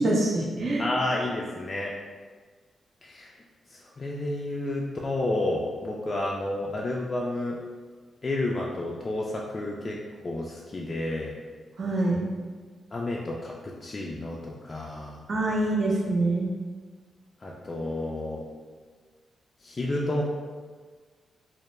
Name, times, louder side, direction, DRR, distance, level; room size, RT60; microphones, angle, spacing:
voice 1, 0.0-0.9 11.8-12.2 15.3-16.5, right 2 dB, 55° right, -2 dB, 0.5 m, -25 dB
voice 2, 0.8-1.9 3.0-3.3 3.7-7.6 8.2-10.0 10.2-11.4 12.9-15.2 17.4-18.4 19.6-20.2, left 2 dB, 40° left, -3 dB, 0.3 m, -30 dB
2.2 x 2.0 x 3.0 m, 1.5 s
supercardioid pair, 50°, 0 cm